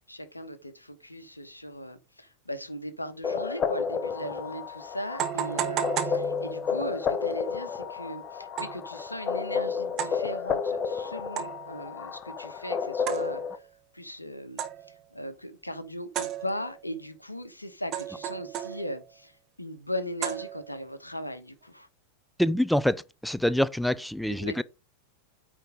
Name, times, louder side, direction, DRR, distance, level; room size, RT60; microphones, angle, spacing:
voice 1, 0.1-13.6 13.9-14.6 15.1-21.9 24.3-24.6, equal, 85° left, 1.1 m, -38 dB
sound 1, 3.2-13.6, left 6 dB, 30° left, 0.9 m, -31 dB
sound 2, 4.2-4.3 5.2-6.9 8.6-8.9 10.0-10.3 11.4-11.8 13.1-13.7 14.6-15.0 16.1-16.9 17.9-19.1 20.2-20.9, right 10 dB, 35° right, 1.3 m, -34 dB
voice 2, 22.4-24.6, left 1 dB, ahead, 0.3 m, -26 dB
9.0 x 3.6 x 5.2 m
figure-of-eight pair, 90°, 0 cm